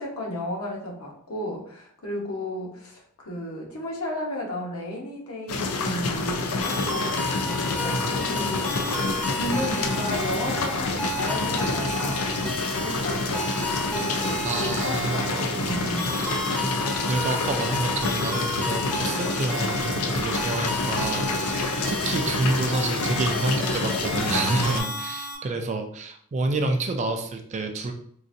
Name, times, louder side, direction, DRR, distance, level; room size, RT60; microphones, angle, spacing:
voice 1, 0.0-13.5 13.9-16.2, left 1 dB, 70° left, -1 dB, 1.0 m, -34 dB
sound 1, 5.5-24.8, left 3 dB, 85° left, 0.5 m, -28 dB
sound 2, 6.6-25.4, equal, 5° left, 0.6 m, -32 dB
voice 2, 14.4-16.3 16.6-27.9, right 3 dB, 30° right, 5 dB, 0.3 m, -29 dB
3.9 x 2.5 x 2.6 m, 0.63 s
head